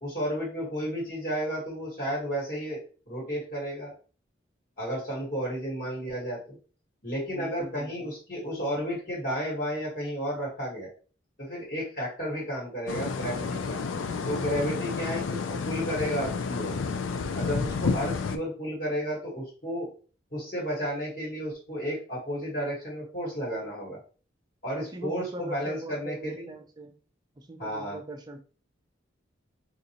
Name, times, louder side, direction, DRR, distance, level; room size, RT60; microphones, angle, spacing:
voice 1, 0.0-2.8 3.1-3.9 4.8-6.6 7.0-10.9 11.4-13.8 14.2-16.7 17.3-19.9 20.3-24.0 24.6-26.5 27.6-28.0, equal, 45° left, -5 dB, 1.4 m, -32 dB
voice 2, 7.3-8.1 24.8-26.9 27.4-28.4, right 1 dB, 20° right, 5 dB, 0.4 m, -41 dB
sound 1, 12.9-18.4, left 5 dB, 85° left, 0.4 m, -30 dB
3.8 x 2.4 x 2.9 m, 0.37 s
head